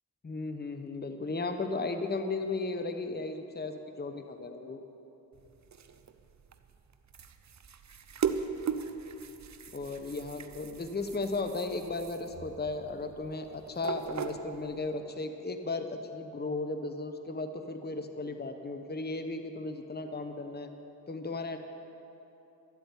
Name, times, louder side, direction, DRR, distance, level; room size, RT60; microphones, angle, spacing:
voice 1, 0.2-4.8 9.7-20.7 21.1-21.6, left 3 dB, 25° left, 7 dB, 1.0 m, -35 dB
sound 1, 5.3-14.9, right 6 dB, 45° right, 0.9 m, -39 dB
12.5 x 8.2 x 9.8 m, 3.0 s
cardioid pair, 60°, 38 cm